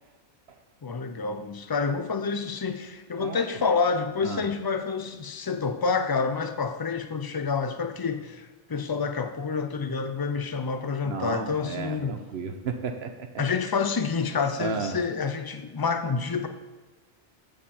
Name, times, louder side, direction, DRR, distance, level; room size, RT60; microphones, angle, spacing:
voice 1, 0.8-12.1 13.4-16.5, left 5 dB, 40° left, 8 dB, 0.3 m, -28 dB
voice 2, 11.0-13.3 14.6-15.0, right 5 dB, 65° right, 6 dB, 1.0 m, -33 dB
14.5 x 5.0 x 4.3 m, 1.2 s
omnidirectional pair, 1.2 m